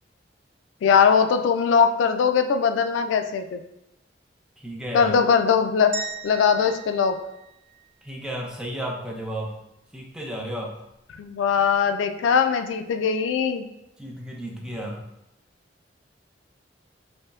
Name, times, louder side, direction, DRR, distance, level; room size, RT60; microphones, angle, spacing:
voice 1, 0.8-3.6 4.9-5.9 6.2-7.2 11.2-13.7, left 6 dB, 90° left, 8 dB, 0.3 m, -20 dB
voice 2, 4.6-5.2 8.0-9.6 9.9-10.8 14.0-15.0, right 1 dB, 5° right, -2 dB, 0.4 m, -33 dB
sound 1, 5.9-8.2, right 5 dB, 60° right, 0.5 m, -37 dB
5.2 x 2.0 x 2.3 m, 0.87 s
head